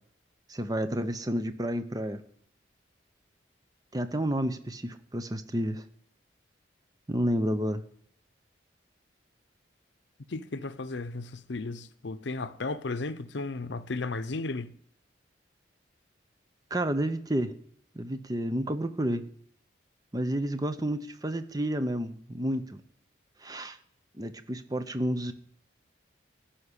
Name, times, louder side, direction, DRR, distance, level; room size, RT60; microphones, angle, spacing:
voice 1, 0.5-2.2 3.9-5.8 7.1-7.8 16.7-17.5 17.9-19.2 20.1-22.8 23.4-23.8 24.2-25.3, right 1 dB, 20° right, 0.7 m, -30 dB
voice 2, 10.3-14.7, left 3 dB, 70° left, 0.7 m, -34 dB
15.0 x 5.8 x 9.8 m
head